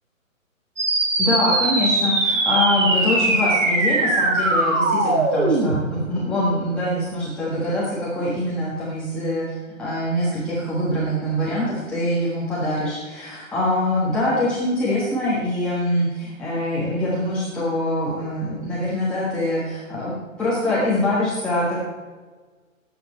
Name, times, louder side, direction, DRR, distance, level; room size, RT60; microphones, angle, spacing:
sound 1, 0.8-5.8, right 2 dB, 60° right, 3.6 m, -20 dB
voice 1, 1.2-9.5 9.8-20.1 20.4-21.8, left 1 dB, 5° left, -10 dB, 1.5 m, -24 dB
18.0 x 8.9 x 4.4 m, 1.4 s
hypercardioid pair, 165°, 41 cm